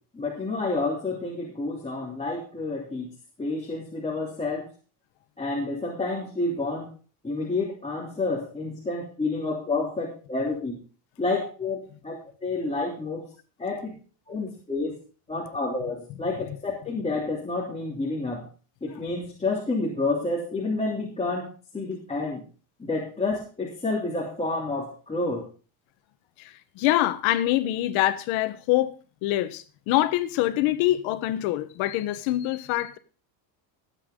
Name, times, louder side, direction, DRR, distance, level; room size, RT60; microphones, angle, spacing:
voice 1, 0.1-3.1 3.4-4.7 5.4-6.9 7.2-10.7 11.2-13.3 13.6-13.9 14.3-15.0 15.3-18.4 18.8-21.5 21.7-22.4 22.8-25.5, left 3 dB, 15° left, 3.1 m, -29 dB
voice 2, 26.4-28.9 29.2-33.0, left 15 dB, 80° left, 1.3 m, -25 dB
18.0 x 8.4 x 3.8 m
cardioid pair, 130°, 47 cm